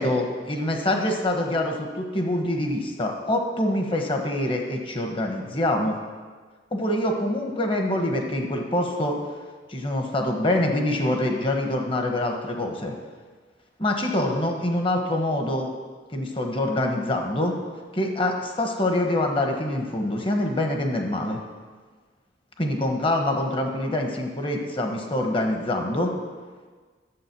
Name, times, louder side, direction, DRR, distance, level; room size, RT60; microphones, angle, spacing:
voice 1, 0.0-6.0 6.7-9.2 9.7-12.9 13.8-15.7 16.1-17.5 17.9-21.4 22.6-26.1, left 1 dB, 30° left, 3 dB, 1.2 m, -25 dB
11.0 x 7.6 x 6.1 m, 1.5 s
head